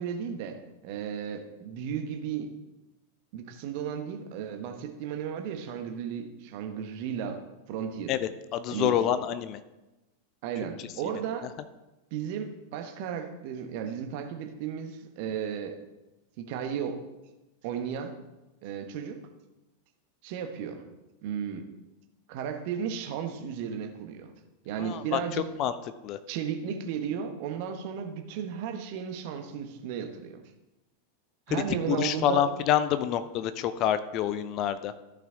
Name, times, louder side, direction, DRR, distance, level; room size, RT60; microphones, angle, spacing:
voice 1, 0.0-2.5 3.3-8.1 8.7-9.1 10.4-11.5 12.1-15.8 16.4-17.0 17.6-18.1 18.6-19.2 20.2-20.8 21.2-21.7 22.3-24.3 24.6-25.5 26.3-30.4 31.5-32.4, right 8 dB, 45° right, 6 dB, 1.1 m, -34 dB
voice 2, 8.1-9.6 24.8-25.2 25.6-25.7 26.0-26.2 31.5-34.9, left 10 dB, 35° left, 13 dB, 0.5 m, -27 dB
14.0 x 5.8 x 3.6 m, 1.0 s
figure-of-eight pair, 90°, 0 cm